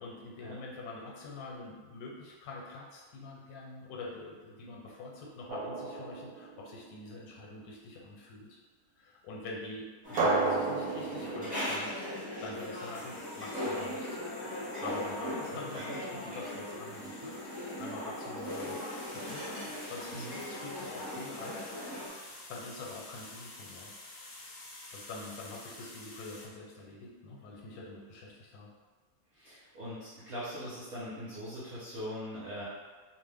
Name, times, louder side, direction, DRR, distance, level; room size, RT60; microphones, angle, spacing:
voice 1, 0.0-8.6 9.0-12.0 12.4-14.2 14.8-18.8 19.1-19.6 19.9-23.9 24.9-28.7, left 2 dB, 80° left, -2 dB, 1.1 m, -45 dB
Drum, 5.5-7.0 10.2-12.9, right 3 dB, 75° right, 1.0 m, -33 dB
sound 1, 10.0-22.1, left 1 dB, 10° right, 0.5 m, -39 dB
sound 2, 12.5-26.5, left 2 dB, 60° left, 0.6 m, -50 dB
voice 2, 15.5-15.9 20.1-20.4 29.3-32.6, equal, 50° right, -10 dB, 0.8 m, -41 dB
2.6 x 2.1 x 3.3 m, 1.4 s
omnidirectional pair, 1.6 m